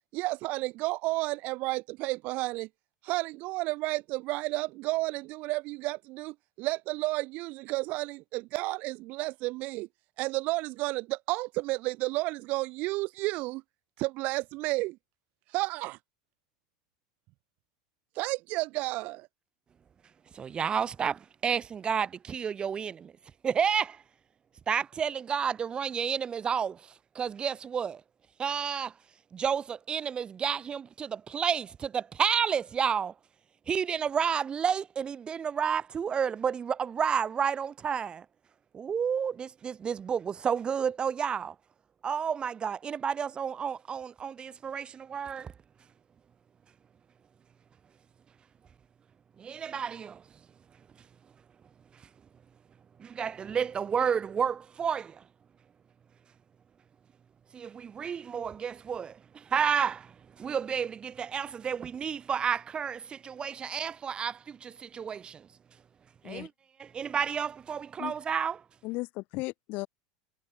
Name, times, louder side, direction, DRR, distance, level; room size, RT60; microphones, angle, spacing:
voice 1, 0.1-2.7 3.0-9.9 10.2-13.6 14.0-15.0 15.5-16.0 18.2-19.3, right 21 dB, 50° right, 0.5 m, -32 dB
voice 2, 20.3-23.1 23.4-24.0 24.7-28.0 28.4-28.9 29.3-33.1 33.7-38.3 38.7-41.6 42.0-45.5 49.4-50.2 51.9-52.1 53.0-55.2 57.5-65.5 66.2-66.5 66.8-68.6, right 7 dB, 25° right, 1.6 m, -31 dB
voice 3, 68.8-69.9, left 23 dB, 50° left, 3.5 m, -35 dB
figure-of-eight pair, 80°, 4 cm